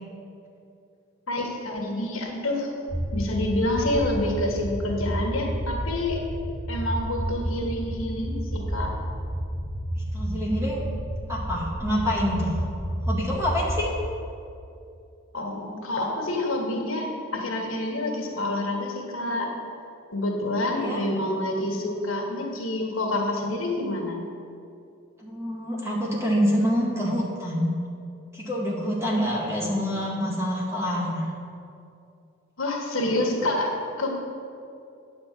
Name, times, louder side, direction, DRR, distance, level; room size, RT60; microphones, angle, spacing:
voice 1, 1.3-2.7 3.1-6.2 6.7-8.9 15.3-19.5 20.1-24.2 32.6-33.7 34.0-34.1, left 1 dB, 90° left, 0 dB, 1.5 m, -27 dB
sound 1, 2.9-14.0, equal, 45° right, 2.2 m, -30 dB
voice 2, 10.1-10.8 11.3-12.6 13.1-13.9 20.6-21.0 25.2-27.7 28.3-31.3, equal, 15° right, -5 dB, 1.9 m, -26 dB
9.7 x 4.4 x 7.5 m, 2.6 s
head